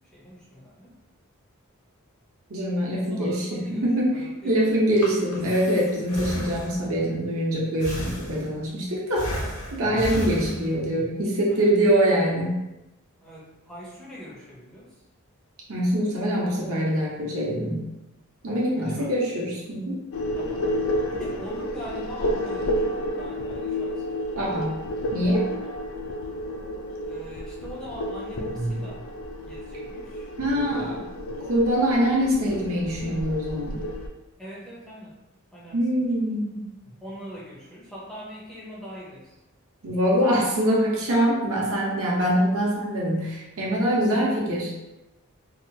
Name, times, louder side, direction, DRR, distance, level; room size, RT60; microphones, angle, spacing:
voice 1, 0.1-1.0 2.9-3.9 4.1-4.8 9.2-9.4 11.5-11.7 13.2-14.9 18.7-19.1 20.3-20.7 21.1-24.2 25.6-25.7 27.1-29.1 29.4-30.3 30.6-31.2 34.4-35.1 35.5-36.0 37.0-39.3, equal, ahead, -7 dB, 0.4 m, -42 dB
voice 2, 2.5-4.2 4.4-9.4 9.7-12.6 15.7-17.9 18.4-20.0 24.4-24.8 25.1-25.5 28.5-28.8 30.4-31.0 31.5-33.8 35.7-36.6 39.8-44.7, equal, 70° right, -4 dB, 0.7 m, -24 dB
Breathing, 4.7-7.0 7.8-8.7 9.2-11.0, equal, 85° left, 0.7 m, -34 dB
sound 1, 20.1-34.1, left 1 dB, 65° left, 0.3 m, -31 dB
2.8 x 2.2 x 2.6 m, 0.97 s
head